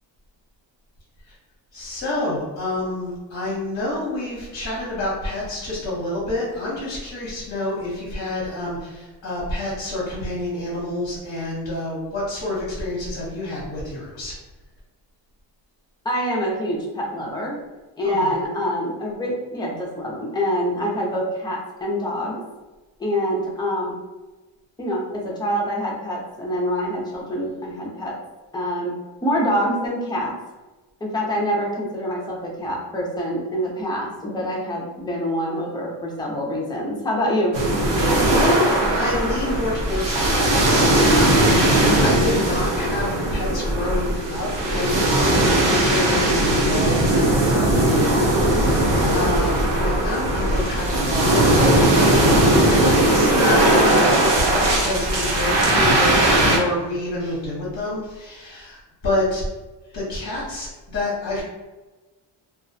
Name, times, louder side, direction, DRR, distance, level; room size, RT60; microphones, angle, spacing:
voice 1, 1.7-14.4 18.0-18.3 37.9-52.2 52.6-59.4 59.9-61.4, left 1 dB, 35° left, -6 dB, 0.8 m, -28 dB
voice 2, 16.0-17.6 18.0-22.4 23.0-24.0 24.8-28.2 28.5-28.9 29.2-30.3 31.0-37.6, equal, 10° left, -3 dB, 0.4 m, -25 dB
sound 1, 37.5-56.6, right 1 dB, 70° right, 0.8 m, -18 dB
2.3 x 2.0 x 2.6 m, 1.2 s
cardioid pair, 145°, 44 cm